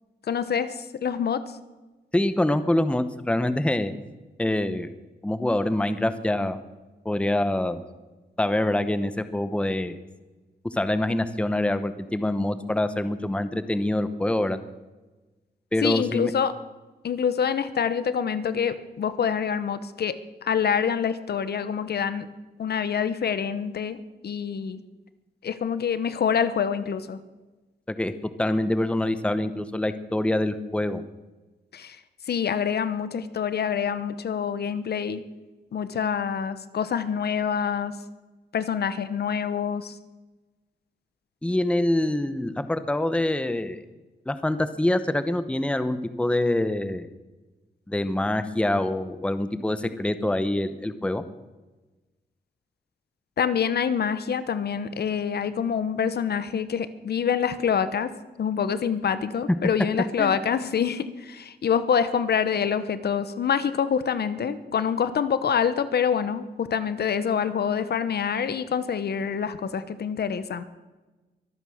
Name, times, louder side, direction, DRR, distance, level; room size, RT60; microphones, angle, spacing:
voice 1, 0.3-1.4 15.8-16.5 17.0-22.3 22.6-24.8 25.4-27.2 31.7-32.0 32.3-35.2 35.7-37.9 38.5-39.9 53.4-58.1 58.4-70.6, left 7 dB, 65° left, 13 dB, 0.9 m, -26 dB
voice 2, 2.1-3.9 4.4-4.9 5.2-6.6 7.0-7.8 8.4-10.0 10.6-14.6 15.7-16.3 28.0-31.0 41.4-43.8 44.3-47.1 47.9-51.2 60.2-60.4, left 1 dB, 5° left, 11 dB, 0.9 m, -25 dB
23.5 x 9.1 x 6.4 m, 1.2 s
wide cardioid pair, 125°, 18 cm